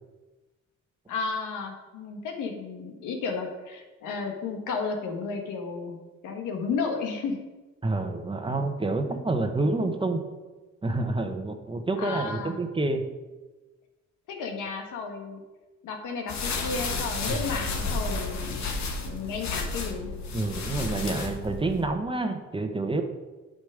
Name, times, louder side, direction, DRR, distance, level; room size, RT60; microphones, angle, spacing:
voice 1, 1.1-6.0 6.2-7.4 12.0-12.6 14.3-15.4 15.8-18.5 19.0-20.1, left 4 dB, 90° left, 3 dB, 1.6 m, -33 dB
voice 2, 7.8-10.2 10.8-13.0 17.3-17.4 20.3-23.0, right 2 dB, 15° right, 6 dB, 1.1 m, -28 dB
sound 1, 16.3-21.9, left 3 dB, 65° left, 1.4 m, -32 dB
8.4 x 5.3 x 6.5 m, 1.2 s
cardioid pair, 90°, 30 cm